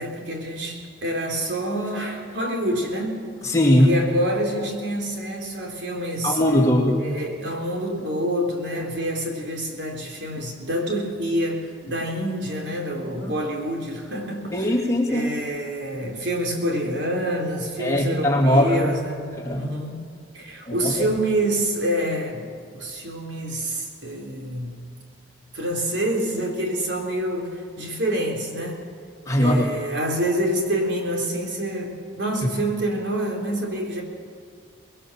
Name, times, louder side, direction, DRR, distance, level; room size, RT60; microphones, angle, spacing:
voice 1, 0.0-3.3 3.8-6.4 7.0-14.8 15.1-20.0 20.3-22.5 22.7-24.8 25.5-28.8 29.4-34.0, right 1 dB, 70° right, 1 dB, 3.9 m, -27 dB
voice 2, 3.4-3.9 6.2-7.1 13.2-13.3 14.5-15.3 17.8-18.9 19.3-19.7 20.7-21.1 29.3-29.7, left 1 dB, 15° left, -1 dB, 2.8 m, -20 dB
25.0 x 21.0 x 7.5 m, 2.1 s
head